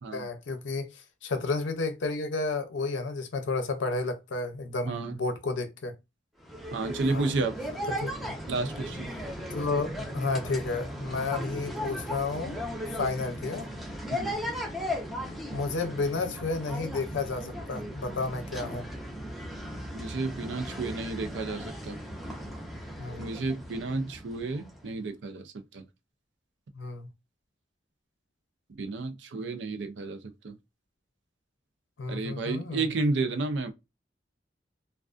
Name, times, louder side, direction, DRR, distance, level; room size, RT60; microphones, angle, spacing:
voice 1, 0.1-5.9 7.1-7.3 8.0-8.4 9.5-12.6 12.9-13.7 15.5-18.9 23.0-23.3 26.7-27.1 32.0-32.9, left 3 dB, 80° left, 0.5 m, -32 dB
sound 1, 6.4-24.9, equal, ahead, 0.6 m, -37 dB
voice 2, 6.7-7.6 8.5-9.1 14.1-14.4 19.9-22.0 23.2-25.8 28.8-30.6 32.1-33.7, right 3 dB, 75° right, 0.4 m, -32 dB
2.4 x 2.3 x 2.3 m
head